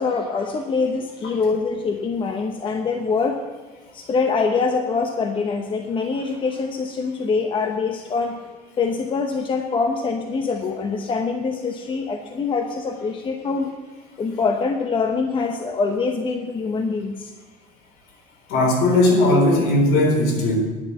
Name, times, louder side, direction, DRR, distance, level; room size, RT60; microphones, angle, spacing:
voice 1, 0.0-3.4 3.9-8.4 8.8-13.7 14.2-17.3, left 4 dB, 30° left, 4 dB, 0.9 m, -24 dB
voice 2, 18.5-20.6, left 1 dB, 70° left, 1 dB, 4.0 m, -17 dB
11.0 x 6.8 x 8.3 m, 1.3 s
cardioid pair, 130°, 16 cm